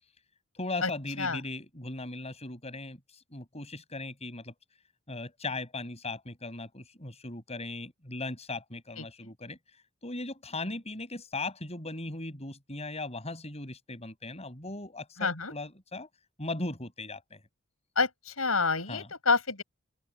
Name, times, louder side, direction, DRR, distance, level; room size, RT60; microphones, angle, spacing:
voice 1, 0.5-4.5 5.1-9.6 10.0-16.1 16.4-17.4 18.9-19.1, left 2 dB, 30° left, 7.7 m, -38 dB
voice 2, 15.2-15.5 18.0-19.6, left 4 dB, 90° left, 7.3 m, -28 dB
open air
head